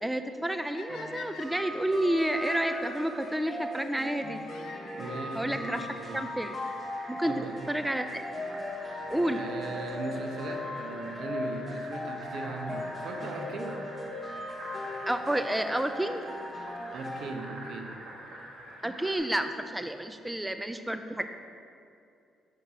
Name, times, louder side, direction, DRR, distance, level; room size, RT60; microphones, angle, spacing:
voice 1, 0.0-4.4 5.3-5.9 6.1-6.6 7.1-7.3 7.7-8.2 9.1-9.4 15.1-16.2 18.8-21.3, right 1 dB, 5° right, 8 dB, 0.4 m, -30 dB
sound 1, 0.7-3.0 4.4-5.5 6.4-6.5 7.2-7.3 7.5-7.6 9.5-9.7 12.6-12.7 13.7-13.8 15.2-15.3 15.6-15.7 15.9-16.0 16.2-16.3 16.5-16.6 16.8-16.9 17.1-17.2, left 5 dB, 75° left, 0.8 m, -45 dB
sound 2, 0.9-17.3, left 2 dB, 20° left, 1.1 m, -39 dB
Fill (with liquid), 1.1-19.2, right 1 dB, 85° right, 1.4 m, -47 dB
voice 2, 4.9-6.3 7.2-7.6 9.3-13.8 16.9-18.0, right 3 dB, 65° right, 4 dB, 0.8 m, -38 dB
6.5 x 5.6 x 4.8 m, 2.5 s
cardioid pair, 90°, 0 cm